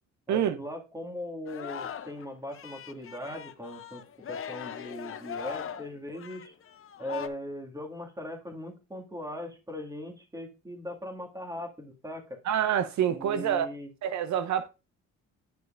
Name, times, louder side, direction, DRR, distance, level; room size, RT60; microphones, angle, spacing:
voice 1, 0.3-6.5 7.0-12.4 13.1-13.9, left 1 dB, 10° right, 2.1 m, -39 dB
Singing, 1.5-2.2 2.5-7.3, left 8 dB, 45° left, 0.7 m, -40 dB
voice 2, 12.4-13.7 14.0-14.7, right 9 dB, 65° right, 0.6 m, -27 dB
9.4 x 6.4 x 2.5 m
cardioid pair, 90°, 30 cm